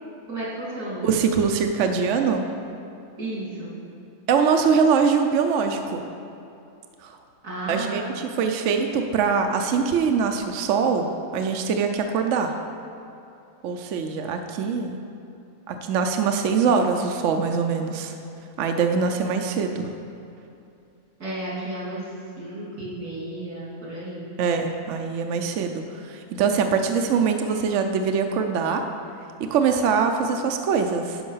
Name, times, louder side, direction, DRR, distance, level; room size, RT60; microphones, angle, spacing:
voice 1, 0.3-1.1 3.2-3.7 7.4-8.1 21.2-22.1 22.4-24.3, right 1 dB, 80° right, -7 dB, 3.2 m, -33 dB
voice 2, 1.0-2.4 4.3-6.0 7.0-7.2 7.7-11.1 11.3-12.5 13.6-15.0 15.7-18.2 18.6-19.9 24.4-28.8 29.4-31.2, right 5 dB, 65° right, 5 dB, 0.8 m, -23 dB
10.5 x 5.5 x 5.6 m, 2.7 s
omnidirectional pair, 1.6 m